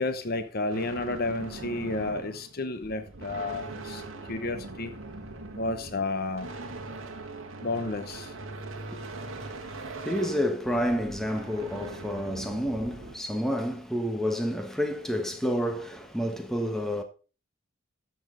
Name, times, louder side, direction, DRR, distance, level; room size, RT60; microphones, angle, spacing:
voice 1, 0.0-4.0 4.3-4.9 5.6-6.5 7.6-8.3, left 2 dB, 45° left, 0.8 m, -31 dB
sound 1, 0.7-13.1, right 2 dB, 70° right, 1.6 m, -41 dB
voice 2, 8.9-17.0, equal, ahead, 1.3 m, -30 dB
12.5 x 7.2 x 3.9 m
head